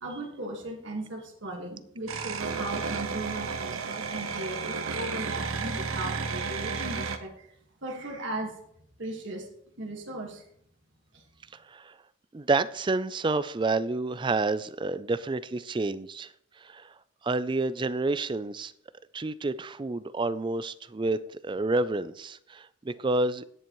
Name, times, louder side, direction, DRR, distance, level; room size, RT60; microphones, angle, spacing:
voice 1, 0.0-7.5 7.8-8.6 9.0-9.5 9.8-10.4 11.1-11.2, right 2 dB, 60° right, 0 dB, 1.7 m, -37 dB
sound 1, 2.1-7.2, right 4 dB, 85° right, 0.9 m, -32 dB
voice 2, 12.3-16.3 16.6-16.9 17.2-18.7 19.1-23.4, right 3 dB, 25° right, 14 dB, 0.4 m, -29 dB
18.0 x 7.1 x 3.1 m, 0.69 s
head